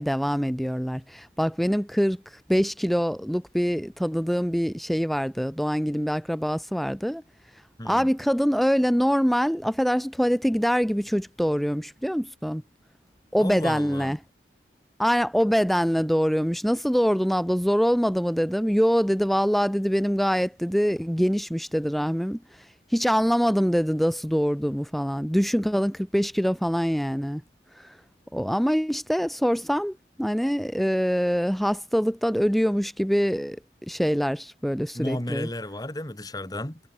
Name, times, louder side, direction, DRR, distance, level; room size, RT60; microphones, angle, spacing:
voice 1, 0.0-2.2 2.5-7.2 7.8-12.6 13.3-14.2 15.0-22.4 22.9-27.4 27.8-27.9 28.3-33.6 33.8-35.5, equal, ahead, 1.4 m, -24 dB
voice 2, 7.8-8.1 13.4-14.2 34.9-36.8, left 1 dB, 20° left, 2.0 m, -33 dB
head